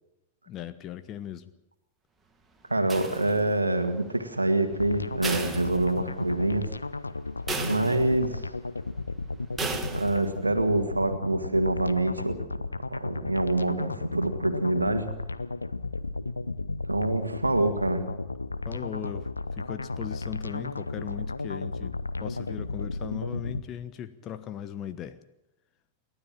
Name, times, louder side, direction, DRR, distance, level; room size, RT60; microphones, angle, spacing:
voice 1, 0.5-1.5 18.6-25.2, left 10 dB, 35° left, 11 dB, 1.1 m, -38 dB
voice 2, 2.7-6.7 7.6-8.5 9.9-12.4 12.9-15.1 16.9-18.0, right 2 dB, 80° right, 7 dB, 1.8 m, -26 dB
sound 1, 2.9-3.7 5.2-6.4 6.7-6.8 7.5-8.4 9.6-10.4, right 3 dB, 15° right, 2.3 m, -35 dB
sound 2, 4.7-23.6, left 3 dB, 80° left, 0.8 m, -34 dB
29.0 x 12.5 x 7.6 m, 0.94 s
figure-of-eight pair, 90°, 0 cm